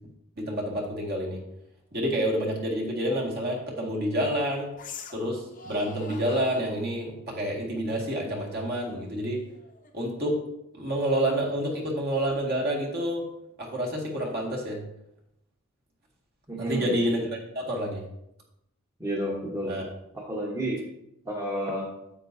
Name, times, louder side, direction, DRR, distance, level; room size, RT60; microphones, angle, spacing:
voice 1, 0.4-1.4 1.9-4.7 5.1-9.4 9.9-10.4 10.7-13.3 13.6-14.8 16.6-18.0 19.7-19.9, equal, 45° right, -2 dB, 2.0 m, -28 dB
sound 1, 3.0-3.1 4.7-5.3 5.5-6.9 8.6-10.1, left 5 dB, 40° left, 0.7 m, -45 dB
voice 2, 16.5-16.9 19.0-19.7 20.1-20.8 21.2-21.9, right 1 dB, 15° right, -3 dB, 1.2 m, -30 dB
9.7 x 8.1 x 2.7 m, 0.81 s
head